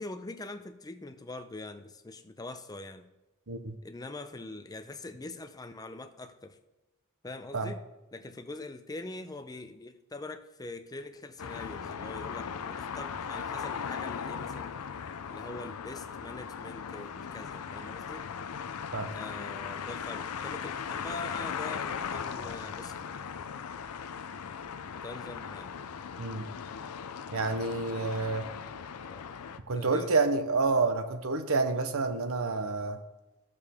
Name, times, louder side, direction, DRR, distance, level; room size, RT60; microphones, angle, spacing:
voice 1, 0.0-3.1 3.8-6.6 7.2-7.8 8.1-14.8 15.3-18.3 19.1-23.1 24.9-25.7 29.0-30.1, left 2 dB, 15° left, 0.6 m, -43 dB
sound 1, 11.4-29.6, left 7 dB, 80° left, 0.5 m, -38 dB
voice 2, 27.3-28.5 29.7-33.0, right 3 dB, 70° right, 0.8 m, -28 dB
14.5 x 6.8 x 3.5 m
head